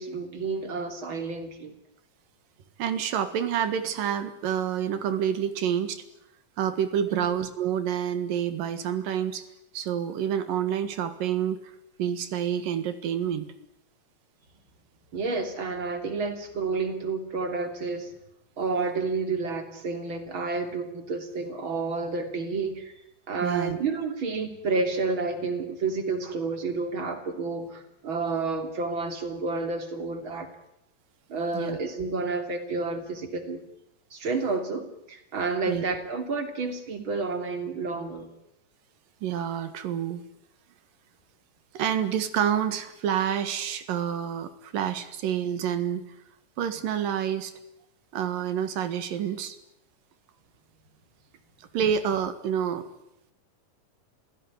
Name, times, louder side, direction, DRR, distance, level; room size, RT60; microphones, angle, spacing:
voice 1, 0.0-1.8 7.1-7.3 15.1-18.1 18.6-22.9 23.3-30.5 31.3-33.6 34.1-38.3, right 4 dB, 40° right, 7 dB, 3.5 m, -30 dB
voice 2, 2.8-6.0 6.6-9.4 9.7-11.6 12.0-13.5 23.4-23.8 31.5-31.8 35.7-35.8 39.2-40.2 41.7-46.0 46.6-47.5 48.1-49.6 51.7-52.9, right 9 dB, 85° right, 11 dB, 3.4 m, -28 dB
26.5 x 16.5 x 9.8 m, 0.81 s
omnidirectional pair, 3.8 m